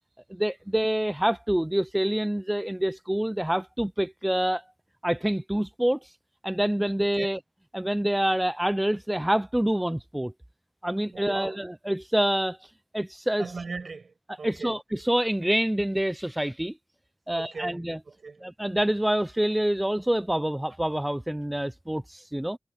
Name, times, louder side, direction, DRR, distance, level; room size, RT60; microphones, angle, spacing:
voice 1, 0.3-4.6 5.0-6.1 6.4-7.4 7.7-10.3 10.8-13.5 14.4-16.7 17.3-18.0 18.4-22.6, right 1 dB, 10° right, 0.4 m, -26 dB
voice 2, 11.1-11.6 13.4-14.7 17.3-18.5, right 4 dB, 65° right, 6.0 m, -38 dB
wide cardioid pair, 85°, 0 cm